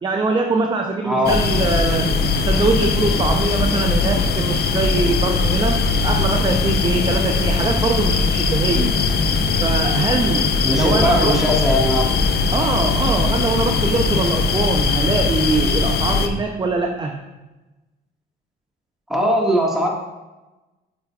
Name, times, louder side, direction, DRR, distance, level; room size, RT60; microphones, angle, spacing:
voice 1, 0.0-2.1 2.4-8.9 9.6-11.4 12.5-17.2, right 3 dB, 25° right, 4 dB, 0.5 m, -22 dB
voice 2, 1.0-1.4 8.7-8.9 10.6-12.1 19.1-19.9, equal, ahead, -2 dB, 1.6 m, -20 dB
sound 1, 1.3-16.3, left 4 dB, 55° left, 0.6 m, -20 dB
8.9 x 5.1 x 2.3 m, 1.1 s
cardioid pair, 90°, 20 cm